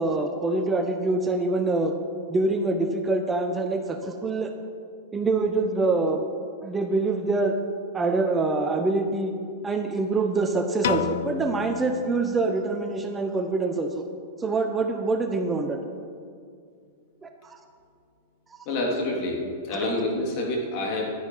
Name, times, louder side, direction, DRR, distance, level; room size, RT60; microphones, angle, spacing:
voice 1, 0.0-1.9 2.3-4.5 5.1-6.2 6.6-7.5 7.9-9.3 9.6-14.0 14.4-15.8 17.2-17.6 19.7-19.8, right 3 dB, 15° right, 5 dB, 0.9 m, -25 dB
Piano, 10.8-13.1, left 10 dB, 75° left, 0.4 m, -32 dB
voice 2, 18.6-21.1, left 1 dB, 50° left, -1 dB, 3.2 m, -27 dB
11.0 x 10.0 x 5.6 m, 2.2 s
hypercardioid pair, 130°, 0 cm